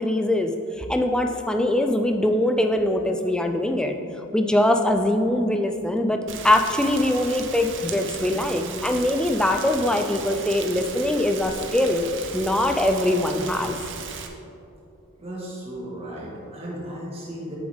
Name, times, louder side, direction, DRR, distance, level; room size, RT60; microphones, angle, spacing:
voice 1, 0.0-3.9 4.3-12.1 12.3-13.8, left 1 dB, 5° left, 5 dB, 0.3 m, -22 dB
Rain, 6.3-14.3, right 6 dB, 55° right, 0.7 m, -36 dB
voice 2, 15.2-17.6, right 1 dB, 25° right, -5 dB, 1.7 m, -35 dB
8.6 x 7.1 x 3.5 m, 2.7 s
head